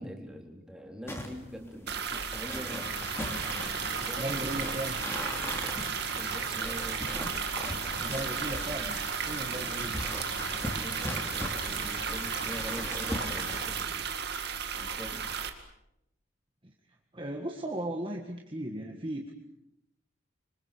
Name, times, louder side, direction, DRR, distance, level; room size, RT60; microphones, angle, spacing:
voice 1, 0.0-2.9 3.4-4.8 6.1-7.0 10.8-14.1 14.7-15.3, equal, 5° right, 1 dB, 3.7 m, -44 dB
sound 1, 1.1-13.8, left 1 dB, 10° left, 3.4 m, -41 dB
sound 2, 1.9-15.5, right 7 dB, 50° right, 2.2 m, -34 dB
sound 3, 2.8-13.7, left 3 dB, 60° left, 2.2 m, -43 dB
voice 2, 3.7-5.0 8.0-9.0 9.3-10.1 17.1-19.3, right 1 dB, 25° right, 1 dB, 1.8 m, -36 dB
26.5 x 25.5 x 6.9 m, 0.85 s
head